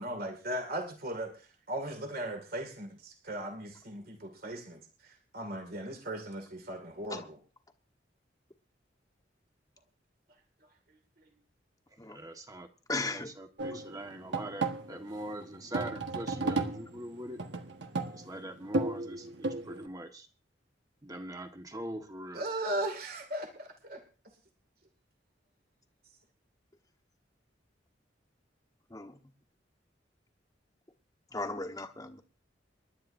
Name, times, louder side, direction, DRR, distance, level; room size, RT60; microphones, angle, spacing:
voice 1, 0.0-7.4 11.2-11.3 22.3-24.0, right 1 dB, 55° right, 2.3 m, -38 dB
voice 2, 11.9-12.7 13.0-17.4 18.1-20.3 21.0-22.4, right 1 dB, 20° right, 1.4 m, -42 dB
voice 3, 12.9-13.3 13.7-13.8 28.9-29.2 31.3-32.2, left 3 dB, 20° left, 1.3 m, -36 dB
sound 1, 13.6-19.9, right 3 dB, 75° right, 1.4 m, -34 dB
28.0 x 11.5 x 2.7 m
head